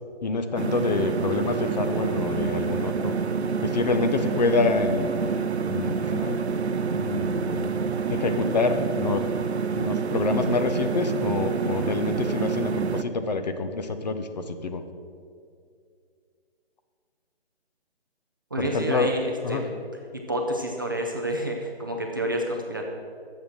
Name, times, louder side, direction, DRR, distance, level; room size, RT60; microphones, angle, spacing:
voice 1, 0.2-3.1 3.6-5.1 5.7-6.4 6.9-7.8 8.1-9.3 9.6-14.9 18.6-19.1 19.4-19.6, left 3 dB, 40° left, 8 dB, 0.7 m, -27 dB
sound 1, 0.6-13.0, right 5 dB, 85° right, 0.7 m, -27 dB
voice 2, 18.5-19.8 20.3-22.9, right 1 dB, 20° right, 1 dB, 0.4 m, -29 dB
9.4 x 7.3 x 6.3 m, 2.3 s
figure-of-eight pair, 150°, 32 cm